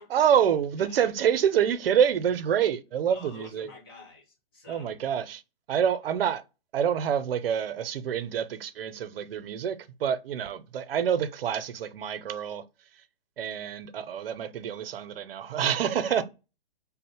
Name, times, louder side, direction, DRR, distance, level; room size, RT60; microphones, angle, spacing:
voice 1, 0.1-3.7 4.7-5.4 5.7-6.4 6.7-12.6 12.9-13.0 13.4-16.2, right 8 dB, 75° right, 0.6 m, -27 dB
voice 2, 3.1-4.9 10.3-10.4 16.0-16.2, left 3 dB, 25° left, 1.0 m, -48 dB
3.5 x 2.1 x 4.3 m
hypercardioid pair, 175°, 29 cm